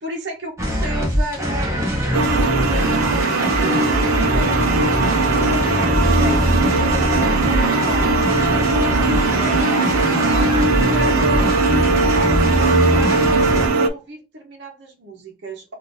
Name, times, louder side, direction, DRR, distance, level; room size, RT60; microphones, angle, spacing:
voice 1, 0.0-6.4 6.7-8.2 8.5-11.5 11.9-13.4 13.7-15.7, right 2 dB, 55° right, 0 dB, 0.8 m, -34 dB
sound 1, 0.6-13.7, equal, 15° right, 0.8 m, -22 dB
sound 2, 2.1-13.9, right 3 dB, 85° right, 0.4 m, -19 dB
3.7 x 2.5 x 2.6 m, 0.31 s
head